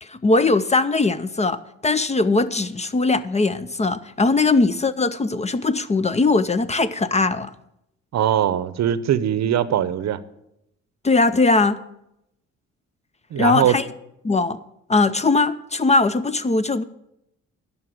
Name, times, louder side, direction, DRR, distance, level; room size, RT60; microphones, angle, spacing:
voice 1, 0.0-7.5 11.0-11.8 13.4-13.8 14.2-14.6 14.9-16.8, left 3 dB, 20° left, 14 dB, 0.5 m, -20 dB
voice 2, 8.1-10.2 13.3-13.8, right 10 dB, 60° right, 15 dB, 0.7 m, -21 dB
11.5 x 5.7 x 7.9 m, 0.83 s
cardioid pair, 90°, 30 cm